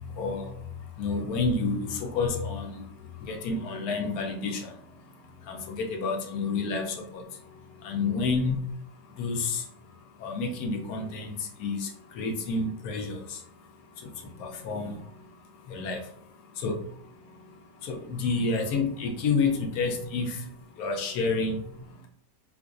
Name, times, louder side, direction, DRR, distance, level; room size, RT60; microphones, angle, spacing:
voice 1, 0.0-22.1, left 4 dB, 70° left, 2 dB, 1.0 m, -31 dB
3.8 x 2.5 x 2.4 m, 0.64 s
omnidirectional pair, 1.8 m